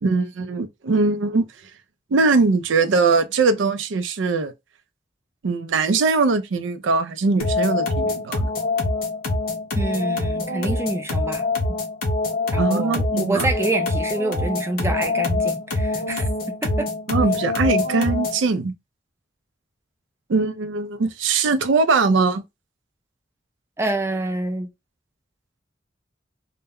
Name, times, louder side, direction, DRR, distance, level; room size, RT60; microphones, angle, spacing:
voice 1, 0.0-1.5 2.1-4.5 5.4-8.5 12.6-13.5 17.1-18.7 20.3-22.4, right 4 dB, 75° right, 0.4 m, -21 dB
sound 1, 7.4-18.5, left 2 dB, 50° left, 0.6 m, -24 dB
voice 2, 9.7-11.4 12.5-16.9 23.8-24.7, right 2 dB, 15° right, 0.4 m, -27 dB
2.1 x 2.1 x 3.5 m
head